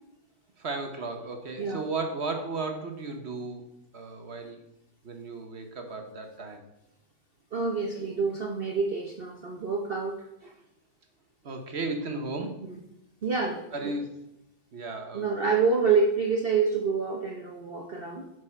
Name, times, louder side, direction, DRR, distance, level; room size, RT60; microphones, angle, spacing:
voice 1, 0.6-3.6 3.9-4.6 5.0-6.6 11.4-12.6 13.7-14.1 14.7-15.3, right 3 dB, 45° right, 5 dB, 0.9 m, -34 dB
voice 2, 7.5-10.5 12.7-12.8 13.2-13.9 15.1-18.3, right 5 dB, 75° right, 1 dB, 0.5 m, -27 dB
8.2 x 6.5 x 4.4 m, 0.84 s
omnidirectional pair, 2.1 m